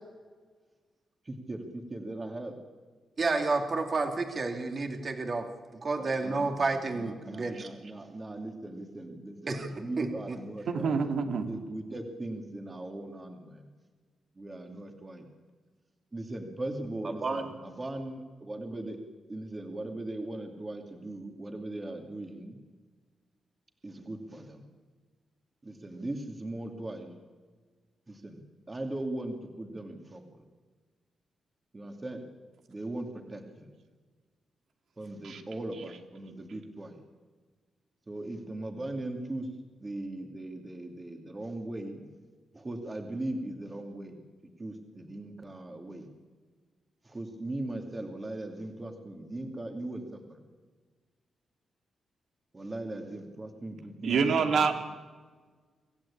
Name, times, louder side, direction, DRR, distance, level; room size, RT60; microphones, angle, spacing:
voice 1, 1.3-2.5 6.0-13.7 14.4-15.3 16.1-19.0 19.3-22.6 23.8-24.6 25.6-27.1 28.1-30.2 31.7-32.2 32.7-33.7 35.0-37.0 38.1-39.5 39.8-42.1 42.5-44.2 44.6-46.1 47.1-50.4 52.5-54.7, right 1 dB, 25° right, 4 dB, 2.6 m, -39 dB
voice 2, 3.2-5.5 5.8-7.7 9.5-10.4 17.0-17.5, right 3 dB, 40° right, 5 dB, 2.7 m, -31 dB
voice 3, 10.7-11.5 35.2-35.4 54.0-54.8, right 5 dB, 75° right, 5 dB, 2.6 m, -26 dB
26.0 x 16.0 x 8.6 m, 1.4 s
cardioid pair, 115°, 0 cm